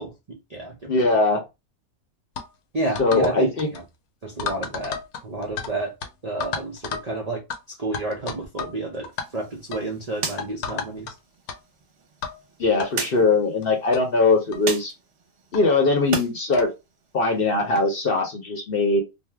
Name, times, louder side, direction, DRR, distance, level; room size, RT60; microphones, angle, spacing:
voice 1, 0.0-1.1 2.7-3.8 4.2-5.9 6.2-9.1 9.3-11.1, right 2 dB, 90° right, 0.3 m, -30 dB
voice 2, 0.9-1.4 3.0-3.7 12.6-14.9 15.5-16.7 17.1-19.0, left 3 dB, 55° left, 0.7 m, -21 dB
sound 1, 2.4-2.5 3.0-3.3 3.6-3.8 4.4-5.7 6.0-6.1 6.4-7.1 7.5-7.6 7.9-8.8 9.0-9.3 9.7-9.9 10.4-11.1 11.5-11.6 12.2-12.4 12.8-12.9 13.6-13.7 13.9-14.0 14.5-14.7 15.5-15.6 16.5-16.7, left 6 dB, 75° left, 1.1 m, -32 dB
sound 2, 9.1-16.3 16.7-17.8, right 4 dB, 50° right, 1.0 m, -37 dB
2.6 x 2.0 x 3.3 m
omnidirectional pair, 1.6 m